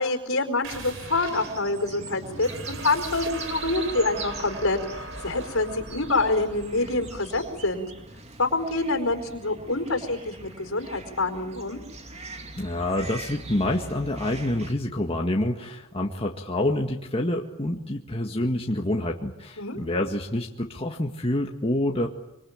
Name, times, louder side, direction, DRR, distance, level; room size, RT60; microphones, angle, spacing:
voice 1, 0.0-7.9 8.4-11.8 19.6-19.8, left 2 dB, 65° left, 7 dB, 4.6 m, -26 dB
sound 1, 0.6-9.9, right 2 dB, 60° right, 4.3 m, -40 dB
sound 2, 1.3-14.7, right 3 dB, 30° right, 2.5 m, -42 dB
voice 2, 12.6-22.1, left 1 dB, 25° left, 1 dB, 1.8 m, -27 dB
26.0 x 25.0 x 8.8 m, 0.95 s
head